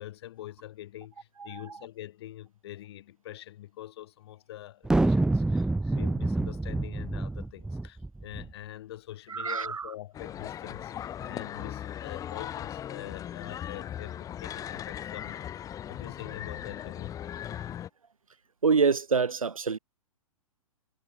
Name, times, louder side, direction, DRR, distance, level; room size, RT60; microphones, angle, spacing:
voice 1, 0.0-15.5 15.9-17.2, left 13 dB, 45° left, 6.1 m, -44 dB
sound 1, 4.8-8.5, right 2 dB, 5° right, 0.9 m, -27 dB
voice 2, 9.3-9.9 11.2-11.3 18.6-19.8, right 5 dB, 75° right, 1.3 m, -26 dB
sound 2, 10.1-17.9, left 10 dB, 20° left, 3.6 m, -38 dB
figure-of-eight pair, 115°, 18 cm